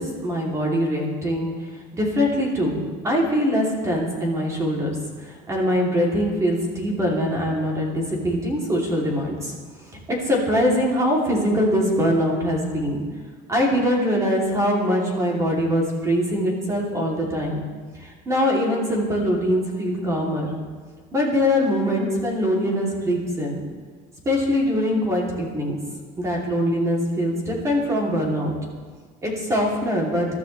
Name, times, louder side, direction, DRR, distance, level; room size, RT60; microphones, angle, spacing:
voice 1, 0.0-1.5 1.9-4.9 5.5-9.5 10.1-13.0 13.5-17.6 18.0-20.5 21.1-23.6 24.2-25.8 26.2-28.6 29.2-30.3, equal, 20° right, -2 dB, 3.0 m, -23 dB
23.0 x 12.5 x 3.3 m, 1.5 s
cardioid pair, 160°, 17 cm